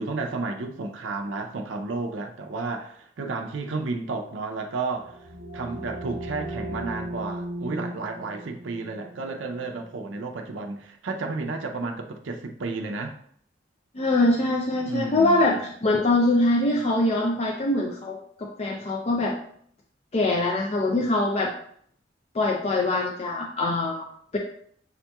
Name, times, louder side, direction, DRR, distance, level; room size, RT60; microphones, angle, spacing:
voice 1, 0.0-5.3 5.5-13.1 14.9-15.6, right 3 dB, 75° right, 3 dB, 0.5 m, -32 dB
sound 1, 4.9-10.4, right 1 dB, 35° right, 0.7 m, -37 dB
voice 2, 13.9-19.4 20.1-21.5 22.3-24.4, left 2 dB, 35° left, 0 dB, 0.4 m, -23 dB
7.0 x 2.9 x 2.2 m, 0.62 s
head